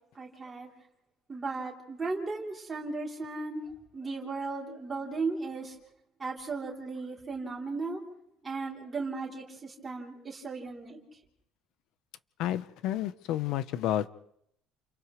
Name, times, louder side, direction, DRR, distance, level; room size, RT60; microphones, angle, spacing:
voice 1, 0.2-0.7 1.3-5.8 6.2-8.0 8.4-11.0, right 3 dB, 15° right, 3.5 m, -36 dB
voice 2, 12.4-14.1, left 12 dB, 50° left, 0.9 m, -30 dB
30.0 x 29.0 x 3.3 m
cardioid pair, 175°, 0 cm